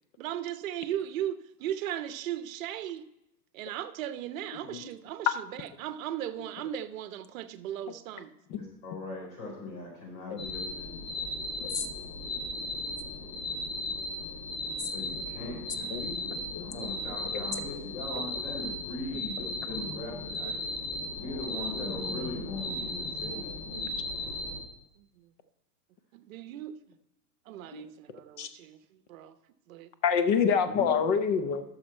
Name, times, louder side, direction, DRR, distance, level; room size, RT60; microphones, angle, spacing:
voice 1, 0.2-3.0 3.5-8.3 25.2-25.3 26.1-26.7 27.5-28.8 29.1-29.3 29.7-29.9, right 11 dB, 55° right, 12 dB, 0.9 m, -37 dB
voice 2, 8.6-11.0 14.9-20.6 21.2-23.5 30.6-30.9, left 2 dB, 50° left, -2 dB, 4.3 m, -40 dB
sound 1, 10.4-24.6, left 1 dB, 80° left, 3.1 m, -36 dB
voice 3, 30.0-31.6, left 6 dB, 25° left, 11 dB, 0.5 m, -27 dB
12.0 x 6.5 x 4.4 m, 0.87 s
hypercardioid pair, 135°, 48 cm